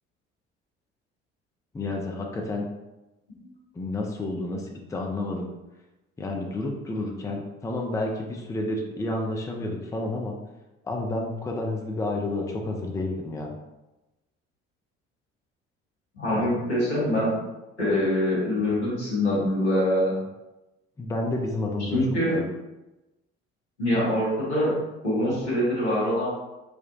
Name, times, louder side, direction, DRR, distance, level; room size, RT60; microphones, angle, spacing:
voice 1, 1.7-2.7 3.8-5.5 6.2-10.4 10.9-13.5 16.3-16.5 21.0-22.0 22.3-22.4, left 2 dB, 10° left, 0 dB, 0.5 m, -30 dB
voice 2, 16.1-17.4 17.8-20.1 21.9-22.4 23.8-24.7 25.0-26.3, left 1 dB, 90° left, -9 dB, 1.0 m, -24 dB
3.6 x 2.2 x 2.5 m, 1.0 s
figure-of-eight pair, 50°, 33 cm